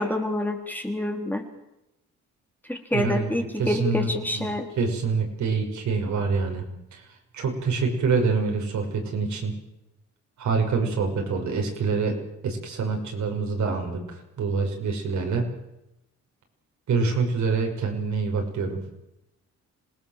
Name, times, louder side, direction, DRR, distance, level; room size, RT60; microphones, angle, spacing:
voice 1, 0.0-1.4 2.7-4.7, left 1 dB, 5° left, 3 dB, 3.8 m, -27 dB
voice 2, 2.9-6.6 6.9-7.0 7.3-9.5 10.4-12.1 12.4-15.5 16.9-18.8, right 4 dB, 70° right, 2 dB, 6.3 m, -26 dB
27.0 x 19.0 x 7.6 m, 0.89 s
cardioid pair, 90°, 30 cm